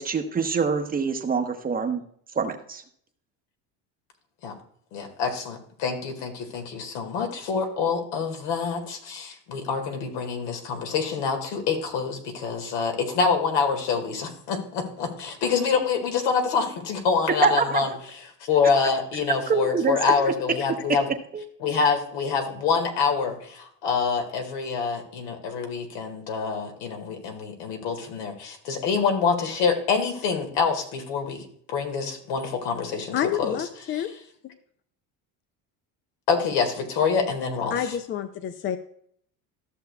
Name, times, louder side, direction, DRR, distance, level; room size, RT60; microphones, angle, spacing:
voice 1, 0.0-2.0 2.4-2.8 17.4-17.8 19.5-20.0 21.3-21.4, right 5 dB, 25° right, 6 dB, 0.8 m, -24 dB
voice 2, 4.9-21.1 21.6-33.6 33.9-34.1 36.3-38.0, left 5 dB, 80° left, 4 dB, 1.9 m, -26 dB
voice 3, 33.1-34.1 37.7-38.8, left 9 dB, 30° left, 10 dB, 0.4 m, -28 dB
14.0 x 6.7 x 2.3 m, 0.64 s
supercardioid pair, 115°, 38 cm